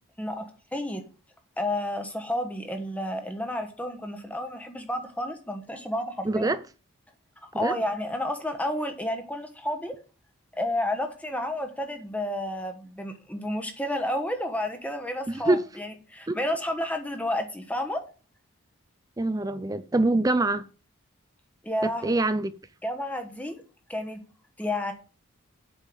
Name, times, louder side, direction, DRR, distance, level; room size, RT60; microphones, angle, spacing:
voice 1, 0.2-1.0 1.6-6.5 7.4-9.9 10.5-18.0 21.6-22.1 22.8-23.6 23.9-24.2 24.6-24.9, left 1 dB, 5° left, 1.1 m, -31 dB
voice 2, 6.3-6.6 7.5-7.7 15.3-15.6 16.3-16.4 19.2-20.6 21.8-22.5, right 2 dB, 15° right, 0.4 m, -25 dB
8.2 x 5.6 x 7.2 m
head